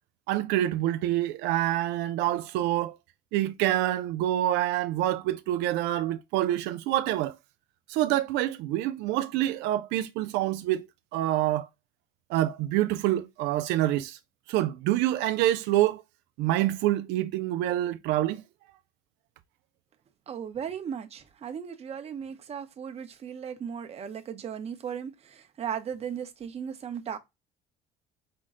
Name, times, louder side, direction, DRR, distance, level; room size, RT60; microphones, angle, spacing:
voice 1, 0.3-3.0 3.3-7.4 7.9-10.9 11.1-11.7 12.3-14.2 14.5-16.0 16.4-18.4, right 14 dB, 90° right, 0.4 m, -26 dB
voice 2, 20.3-27.2, right 8 dB, 35° right, 0.8 m, -36 dB
5.3 x 2.1 x 3.6 m
cardioid pair, 130°, 17 cm